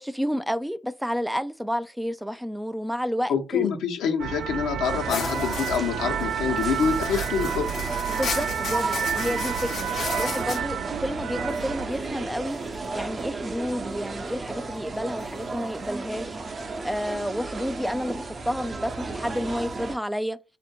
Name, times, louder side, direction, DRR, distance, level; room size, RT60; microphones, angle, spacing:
voice 1, 0.0-3.7 8.1-20.4, equal, ahead, 0.3 m, -30 dB
voice 2, 3.3-7.8, left 6 dB, 85° left, 1.0 m, -26 dB
sound 1, 4.2-11.9, right 9 dB, 80° right, 0.4 m, -30 dB
sound 2, 4.8-20.0, right 3 dB, 35° right, 0.6 m, -34 dB
sound 3, 5.1-5.8 6.2-6.3 6.6-10.6 11.5-11.6 12.7-12.8 15.2-15.3, left 6 dB, 60° left, 0.6 m, -34 dB
3.5 x 2.6 x 4.2 m
cardioid pair, 90°, 0 cm